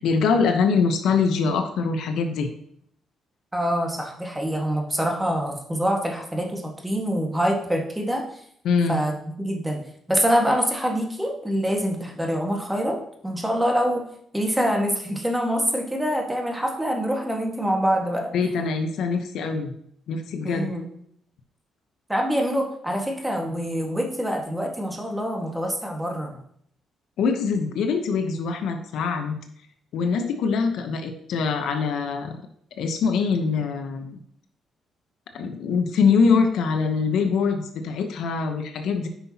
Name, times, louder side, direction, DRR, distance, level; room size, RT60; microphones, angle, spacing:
voice 1, 0.0-2.5 8.6-9.0 18.3-19.7 20.1-20.7 27.2-29.4 29.9-32.4 32.8-34.2 35.3-39.1, left 5 dB, 80° left, 6 dB, 0.9 m, -23 dB
voice 2, 3.5-8.2 8.9-9.8 10.1-14.0 14.3-18.3 20.4-20.9 22.1-26.4, equal, 10° right, 1 dB, 1.7 m, -25 dB
9.7 x 5.7 x 2.9 m, 0.69 s
cardioid pair, 90°, 0 cm